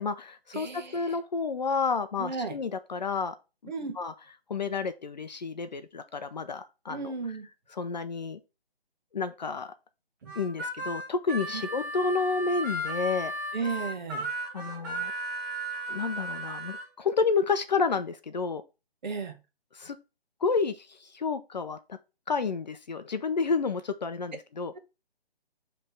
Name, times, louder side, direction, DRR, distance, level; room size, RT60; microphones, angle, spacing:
voice 1, 0.0-3.3 4.0-4.1 4.5-7.1 7.7-8.4 9.1-9.7 10.4-13.3 14.5-15.1 15.9-18.6 19.7-20.0 20.4-22.0 22.3-24.7, left 4 dB, 45° left, 0.5 m, -30 dB
voice 2, 0.5-1.2 2.2-2.6 3.6-4.0 6.9-7.5 10.2-10.3 11.5-11.7 13.5-14.3 19.0-19.4, right 4 dB, 45° right, 1.3 m, -34 dB
Harmonica, 10.3-16.8, right 1 dB, 20° right, 1.0 m, -35 dB
5.2 x 3.3 x 5.4 m
figure-of-eight pair, 155°, 31 cm